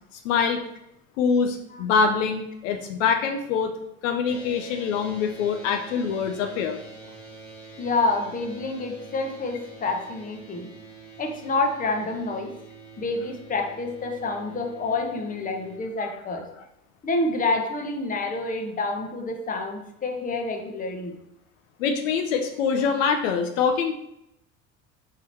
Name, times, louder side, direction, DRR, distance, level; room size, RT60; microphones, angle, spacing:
voice 1, 0.1-0.6 1.2-3.7 4.0-6.8 21.8-23.9, left 6 dB, 65° left, 5 dB, 0.6 m, -24 dB
sound 1, 4.2-15.8, right 3 dB, 5° left, 1.7 m, -45 dB
voice 2, 7.8-10.7 11.2-12.5 13.0-16.5 17.0-21.1, left 3 dB, 20° left, 3 dB, 0.8 m, -28 dB
3.9 x 2.7 x 4.4 m, 0.81 s
figure-of-eight pair, 65°, 41 cm